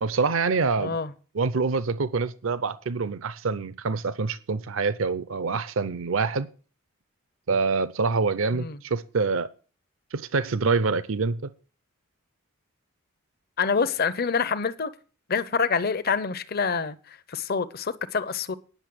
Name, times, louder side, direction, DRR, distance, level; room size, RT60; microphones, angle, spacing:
voice 1, 0.0-1.0 1.3-6.5 7.5-9.5 10.1-11.4, right 4 dB, 65° right, 0.6 m, -26 dB
voice 2, 0.8-1.1 8.5-8.8 13.6-14.9 15.3-18.5, left 5 dB, 45° left, 0.7 m, -26 dB
10.0 x 6.5 x 7.7 m
head